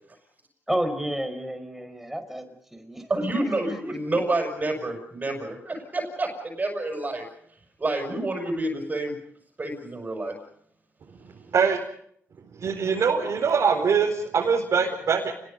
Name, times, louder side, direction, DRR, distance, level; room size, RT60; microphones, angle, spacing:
voice 1, 0.7-2.4 2.7-3.1 3.4-3.9, equal, 5° right, 7 dB, 5.1 m, -30 dB
voice 2, 3.1-7.2 7.8-9.2 9.6-10.3, right 2 dB, 30° right, 1 dB, 6.3 m, -28 dB
voice 3, 12.6-15.3, right 6 dB, 65° right, -2 dB, 4.6 m, -23 dB
29.5 x 21.5 x 5.4 m, 0.68 s
cardioid pair, 90°, 6 cm